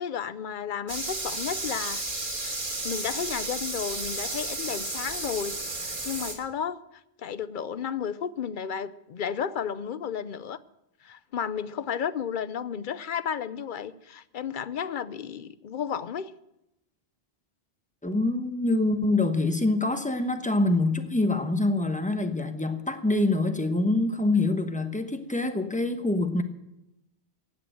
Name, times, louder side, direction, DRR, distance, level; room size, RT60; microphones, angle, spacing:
voice 1, 0.0-2.0 2.4-2.5 2.8-6.8 7.2-10.6 11.0-16.3, left 8 dB, 55° left, 0.8 m, -33 dB
sound 1, 0.9-6.3, right 2 dB, 50° right, 2.3 m, -33 dB
voice 2, 18.0-26.4, left 2 dB, 10° left, 1.0 m, -25 dB
15.5 x 9.4 x 7.8 m
omnidirectional pair, 1.1 m